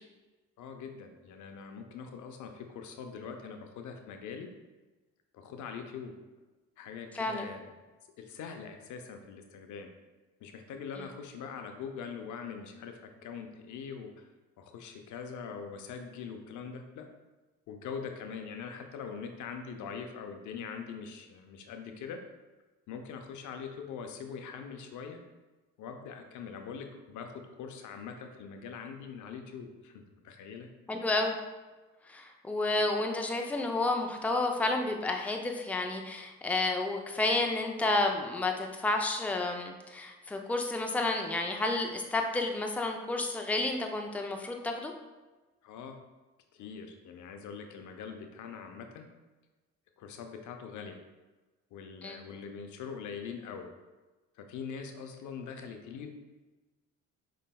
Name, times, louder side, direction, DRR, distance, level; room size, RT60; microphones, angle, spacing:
voice 1, 0.6-4.5 5.3-6.1 6.8-7.7 8.2-9.9 10.4-14.3 14.6-17.1 17.7-22.2 22.9-25.2 25.8-30.7 45.6-46.0 46.5-49.1 50.0-51.0 51.7-53.7 54.4-56.1, left 6 dB, 70° left, 5 dB, 0.6 m, -43 dB
voice 2, 30.9-31.4 32.1-44.9 52.0-52.2, left 2 dB, 5° left, 3 dB, 0.5 m, -31 dB
5.2 x 3.2 x 2.2 m, 1.2 s
supercardioid pair, 65°, 31 cm